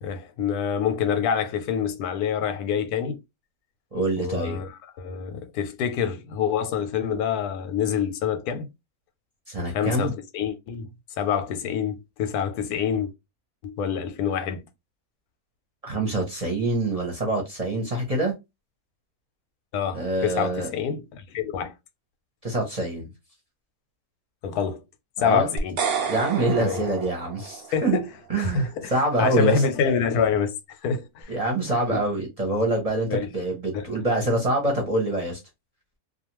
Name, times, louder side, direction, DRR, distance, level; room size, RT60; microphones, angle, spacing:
voice 1, 0.0-3.2 4.2-8.7 9.7-10.9 11.2-13.1 13.6-14.6 19.7-21.7 24.4-24.8 25.2-25.8 26.6-26.9 27.7-28.1 28.4-31.4 31.7-32.0 33.1-33.3 33.7-33.9, left 7 dB, 90° left, 1.1 m, -26 dB
voice 2, 3.9-4.6 9.5-10.1 15.8-18.3 19.9-20.7 22.4-23.1 25.2-25.5 26.1-28.0 28.3-29.6 31.3-35.4, right 1 dB, 35° right, 0.7 m, -25 dB
sound 1, 25.6-27.9, right 6 dB, 80° right, 0.5 m, -30 dB
2.4 x 2.3 x 2.9 m
omnidirectional pair, 1.6 m